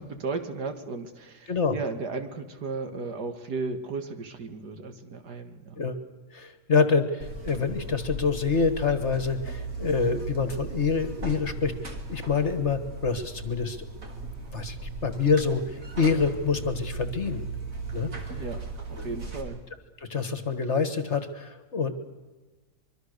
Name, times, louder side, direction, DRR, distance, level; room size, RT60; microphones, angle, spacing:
voice 1, 0.0-5.8 18.4-18.6 18.9-19.6, right 4 dB, 70° right, 7 dB, 2.3 m, -35 dB
voice 2, 6.3-13.9 14.5-17.5 17.9-18.1 19.0-19.1 20.0-21.9, left 5 dB, 45° left, 10 dB, 1.7 m, -26 dB
Buzz, 7.2-19.4, right 3 dB, 50° right, 3.0 m, -37 dB
25.0 x 23.0 x 6.7 m, 1.3 s
omnidirectional pair, 1.8 m